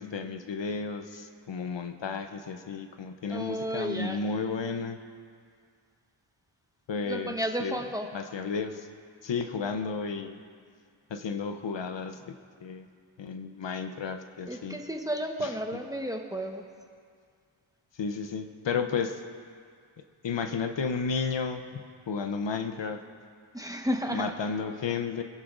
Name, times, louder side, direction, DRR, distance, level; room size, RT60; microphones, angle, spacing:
voice 1, 0.0-5.0 6.9-7.3 7.6-7.8 8.1-8.9 9.2-10.4 11.1-12.9 13.2-14.8 15.4-15.5 18.0-19.2 20.2-21.8 22.1-23.0 24.1-25.2, left 5 dB, 60° left, 8 dB, 0.8 m, -32 dB
voice 2, 3.3-4.2 7.0-8.1 14.5-16.6 23.5-24.3, equal, 5° right, 3 dB, 1.2 m, -32 dB
23.5 x 11.0 x 2.6 m, 2.1 s
cardioid pair, 65°, 49 cm